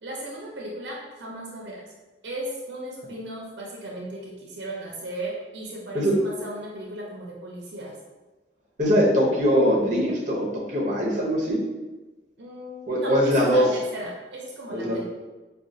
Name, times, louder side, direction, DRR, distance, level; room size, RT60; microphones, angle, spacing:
voice 1, 0.0-1.8 2.2-8.0 12.4-15.0, right 1 dB, 80° right, -2 dB, 0.6 m, -36 dB
voice 2, 8.8-11.6 12.9-13.6 14.7-15.0, equal, 45° right, -3 dB, 0.8 m, -22 dB
4.7 x 2.3 x 2.6 m, 1.2 s
head